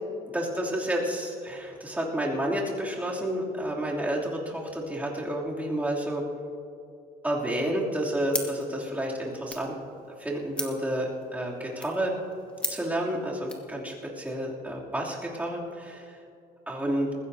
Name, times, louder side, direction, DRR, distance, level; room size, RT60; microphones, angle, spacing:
voice 1, 0.3-6.2 7.2-9.7 10.2-12.1 12.7-16.0 16.7-17.1, right 1 dB, 10° right, -4 dB, 3.0 m, -30 dB
sound 1, 8.3-13.7, left 1 dB, 5° left, 1.6 m, -39 dB
20.0 x 15.5 x 2.8 m, 2.5 s
cardioid pair, 110°, 17 cm